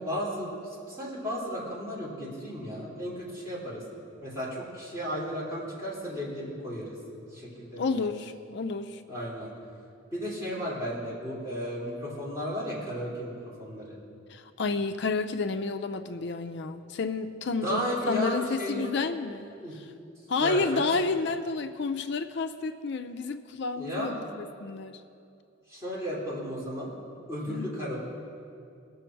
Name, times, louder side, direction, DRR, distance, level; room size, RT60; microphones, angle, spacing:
voice 1, 0.0-3.8 4.2-7.0 7.3-8.0 9.1-9.5 10.1-13.3 13.6-14.0 17.6-18.9 19.6-19.7 20.4-20.9 23.7-24.1 25.7-26.9 27.3-28.0, equal, 15° right, -8 dB, 3.2 m, -34 dB
voice 2, 7.8-9.0 14.3-19.6 20.3-25.0 27.5-27.7, left 4 dB, 55° left, 9 dB, 0.5 m, -30 dB
20.5 x 7.0 x 4.6 m, 2.5 s
head